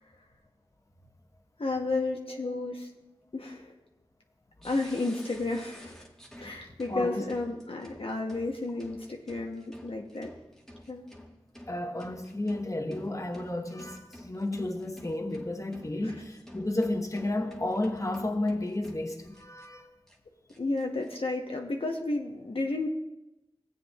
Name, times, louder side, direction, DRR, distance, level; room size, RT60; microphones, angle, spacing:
voice 1, 1.6-2.9 3.3-3.7 4.6-6.1 6.4-10.3 10.9-11.1 16.0-16.1 20.6-22.9, left 2 dB, 65° left, 0.8 m, -32 dB
sound 1, 4.6-19.7 20.1-20.2 20.5-21.1, equal, 5° left, 1.3 m, -51 dB
voice 2, 6.9-7.2 11.7-19.9, left 1 dB, 30° left, 1.0 m, -32 dB
17.0 x 8.2 x 2.3 m
wide cardioid pair, 50°, 10 cm